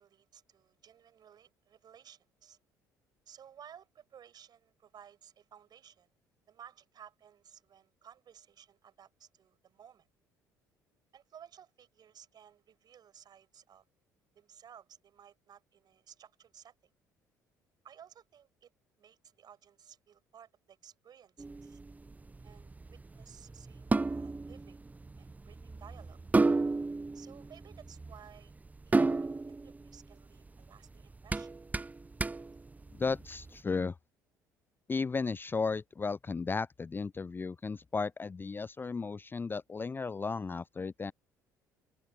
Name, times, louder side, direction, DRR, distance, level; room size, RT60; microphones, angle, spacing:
voice 1, 0.0-2.6 3.3-6.1 6.5-10.1 11.1-13.9 14.4-16.9 17.8-18.7 19.0-21.8 22.4-24.8 25.2-26.2 27.1-28.5 28.9-31.6, right 9 dB, 45° right, 6.9 m, -57 dB
sound 1, 21.4-33.5, right 3 dB, 15° right, 0.7 m, -33 dB
voice 2, 32.9-34.0 34.9-41.1, left 4 dB, 20° left, 0.5 m, -34 dB
open air
figure-of-eight pair, 55°, 9 cm